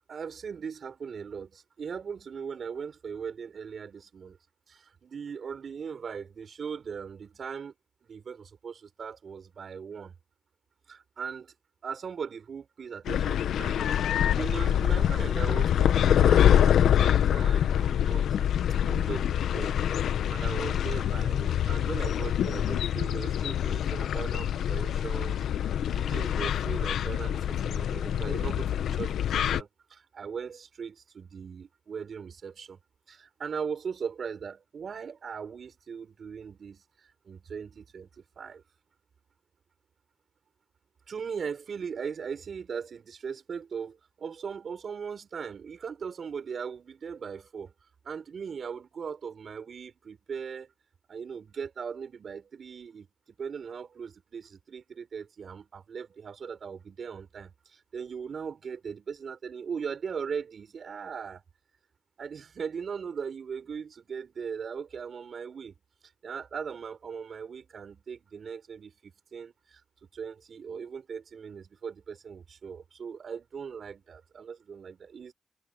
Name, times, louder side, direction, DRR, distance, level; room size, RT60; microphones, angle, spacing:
voice 1, 0.1-4.4 4.7-7.7 8.1-10.1 10.9-11.5 11.8-18.5 18.8-19.8 20.1-25.4 25.9-32.8 33.1-38.6 41.1-47.7 48.0-50.7 51.1-53.1 53.4-61.4 62.2-65.8 66.2-69.8 70.1-75.3, right 6 dB, 65° right, 4.5 m, -39 dB
sound 1, 13.1-29.6, left 10 dB, 85° left, 1.0 m, -25 dB
supercardioid pair, 50°, 0 cm